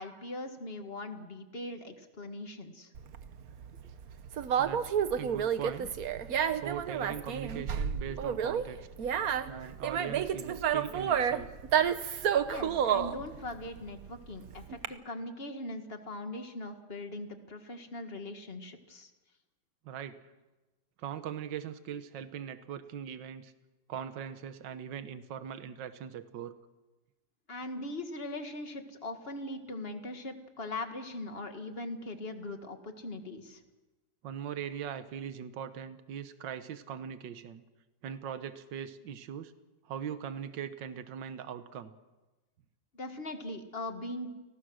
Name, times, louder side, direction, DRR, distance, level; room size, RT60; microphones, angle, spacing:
voice 1, 0.0-2.9 12.5-19.1 27.5-33.6 42.9-44.3, left 2 dB, 30° left, 6 dB, 2.0 m, -40 dB
Conversation, 2.9-14.9, right 8 dB, 55° right, 1.3 m, -30 dB
voice 2, 4.6-5.9 6.5-8.8 9.5-11.5 19.9-20.2 21.0-23.5 23.9-26.5 34.2-37.6 38.0-39.5 39.9-41.9, right 8 dB, 75° right, 11 dB, 1.8 m, -40 dB
30.0 x 19.0 x 6.4 m, 1.1 s
omnidirectional pair, 2.0 m